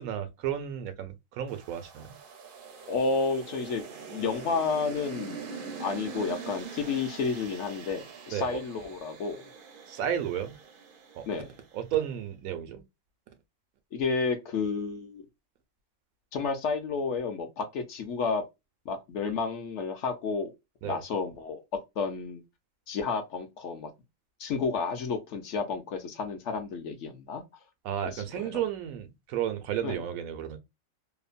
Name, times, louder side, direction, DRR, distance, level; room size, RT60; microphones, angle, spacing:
voice 1, 0.0-2.2 8.3-8.6 9.9-10.6 11.2-11.3 11.7-12.8 20.8-21.0 27.8-30.6, right 10 dB, 90° right, 1.1 m, -32 dB
sound 1, 1.5-11.8, right 5 dB, 55° right, 0.6 m, -43 dB
voice 2, 2.9-3.8 4.1-9.5 11.2-11.5 13.9-15.3 16.3-18.4 18.9-20.5 20.8-21.6 22.0-22.4 22.9-23.9 24.4-27.4 28.1-28.6 29.8-30.0, left 4 dB, 65° left, 0.9 m, -31 dB
2.9 x 2.1 x 2.4 m
omnidirectional pair, 1.4 m